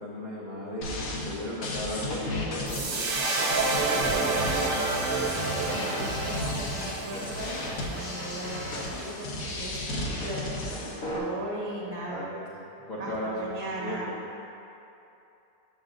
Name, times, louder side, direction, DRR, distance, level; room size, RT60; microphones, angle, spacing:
voice 1, 0.0-5.9 12.1-12.5 12.8-14.2, left 1 dB, 40° left, -7 dB, 0.6 m, -37 dB
sound 1, 0.8-11.2, left 1 dB, 65° left, 1.2 m, -34 dB
sound 2, 2.7-9.0, right 3 dB, 80° right, 0.4 m, -30 dB
voice 2, 5.7-12.2 13.0-14.1, right 1 dB, 20° right, -6 dB, 1.1 m, -38 dB
8.5 x 6.3 x 2.5 m, 2.8 s
omnidirectional pair, 1.7 m